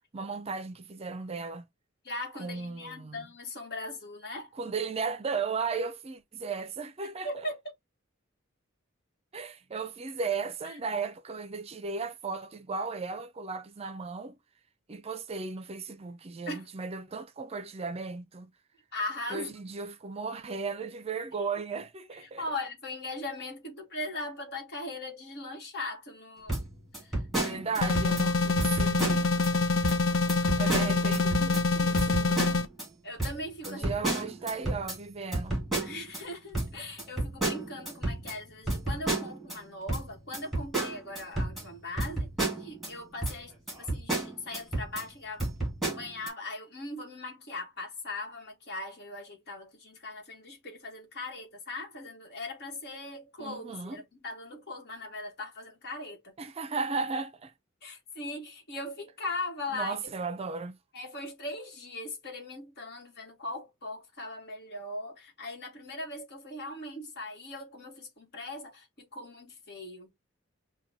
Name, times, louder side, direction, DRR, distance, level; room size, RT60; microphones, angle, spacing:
voice 1, 0.1-1.7 2.4-3.3 4.6-7.3 9.3-14.4 14.9-18.5 19.3-22.4 27.3-29.3 30.6-32.5 33.6-35.6 53.4-54.0 56.4-57.5 59.7-60.8, right 4 dB, 30° right, 0.4 m, -35 dB
voice 2, 2.0-4.5 7.2-7.5 16.5-16.7 18.9-19.6 22.4-26.6 27.0-27.6 28.2-28.4 28.8-29.0 33.0-34.0 35.8-42.3 42.6-45.5 45.9-56.3 57.8-60.0 60.9-70.1, left 2 dB, 55° left, 1.4 m, -39 dB
sound 1, 26.5-28.3 28.6-29.5 29.8-30.0 30.3-31.6 32.0-32.9 33.2-36.2 36.5-39.6 39.9-42.9 43.2-43.4 43.7-45.1 45.4-46.3, right 2 dB, ahead, 1.7 m, -32 dB
sound 2, 27.8-32.7, left 3 dB, 75° left, 0.6 m, -26 dB
5.9 x 2.2 x 2.7 m
head